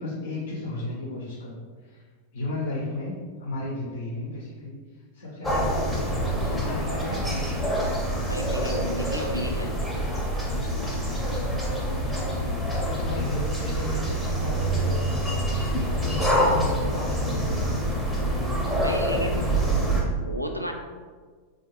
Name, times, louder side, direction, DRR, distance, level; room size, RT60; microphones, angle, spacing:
voice 1, 0.0-2.0 2.3-4.7 5.1-7.6 11.6-18.2 18.8-20.2, left 2 dB, 65° left, -5 dB, 0.8 m, -35 dB
sound 1, 5.4-20.0, right 1 dB, ahead, 0.8 m, -26 dB
voice 2, 8.2-9.8 18.8-19.4 20.2-20.7, equal, 90° right, 3 dB, 0.3 m, -33 dB
3.8 x 2.4 x 2.9 m, 1.5 s
figure-of-eight pair, 90°, 0 cm